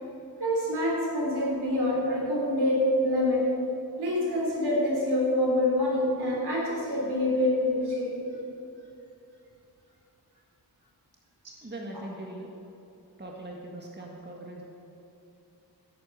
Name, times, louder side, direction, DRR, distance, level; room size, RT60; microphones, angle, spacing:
voice 1, 0.4-3.5 4.0-8.3, left 1 dB, 70° right, -3 dB, 3.6 m, -26 dB
voice 2, 11.6-12.5 13.2-14.6, right 1 dB, 25° right, -1 dB, 1.8 m, -40 dB
11.0 x 8.7 x 8.0 m, 2.7 s
cardioid pair, 55°, 40 cm